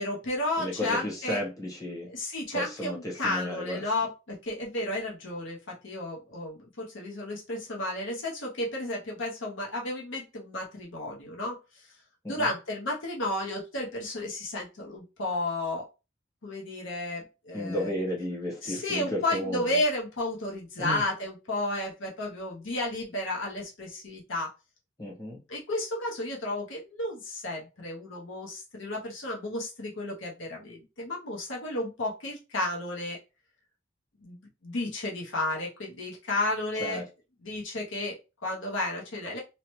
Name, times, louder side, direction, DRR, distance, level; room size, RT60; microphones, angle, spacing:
voice 1, 0.0-1.4 2.1-11.9 12.3-15.9 16.4-17.9 18.6-24.5 25.5-33.2 34.2-37.0 37.4-39.4, left 1 dB, 65° left, -1 dB, 0.8 m, -32 dB
voice 2, 0.6-2.1 2.5-3.8 12.2-12.5 17.5-19.8 20.8-21.0 25.0-25.4 36.8-37.0, left 1 dB, 15° left, -3 dB, 1.0 m, -33 dB
2.8 x 2.1 x 3.0 m, 0.28 s
head